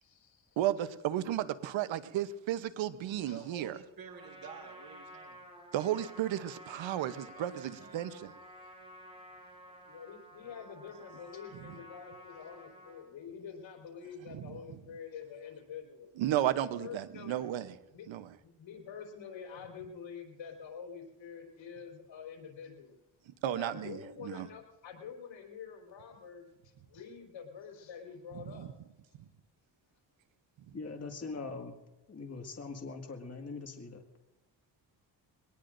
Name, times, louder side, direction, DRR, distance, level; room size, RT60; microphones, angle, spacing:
voice 1, 0.0-0.6 3.2-3.5 9.7-16.1 16.6-17.4 17.9-18.1 18.4-23.0 23.5-28.7, left 7 dB, 80° left, 0 dB, 3.9 m, -47 dB
voice 2, 0.6-3.8 5.7-8.3 11.6-11.7 14.3-14.4 16.2-17.7 18.1-18.3 23.3-24.5 28.3-28.7 30.7-30.8, right 12 dB, 85° right, 13 dB, 0.9 m, -34 dB
voice 3, 3.3-5.4 7.4-8.2, right 7 dB, 50° right, 4 dB, 1.9 m, -50 dB
Trumpet, 4.0-13.0, equal, 10° right, 6.8 m, -52 dB
voice 4, 30.7-31.8 32.1-34.0, left 4 dB, 35° left, 2 dB, 2.0 m, -42 dB
22.5 x 19.0 x 2.6 m, 1.0 s
cardioid pair, 90°, 45 cm